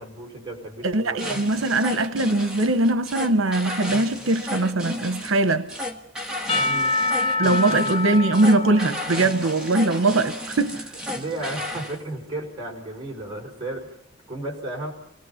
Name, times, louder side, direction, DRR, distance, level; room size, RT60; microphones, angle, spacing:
voice 1, 0.0-1.2 6.6-6.9 7.4-7.8 11.1-13.9 14.3-14.9, right 2 dB, 25° right, 5.0 m, -34 dB
voice 2, 0.8-5.7 7.4-10.9, right 2 dB, 85° right, 0.9 m, -21 dB
sound 1, 1.2-12.0, left 1 dB, 5° right, 1.6 m, -33 dB
Percussion / Church bell, 6.5-10.5, left 2 dB, 25° left, 0.7 m, -27 dB
27.0 x 18.5 x 5.7 m
head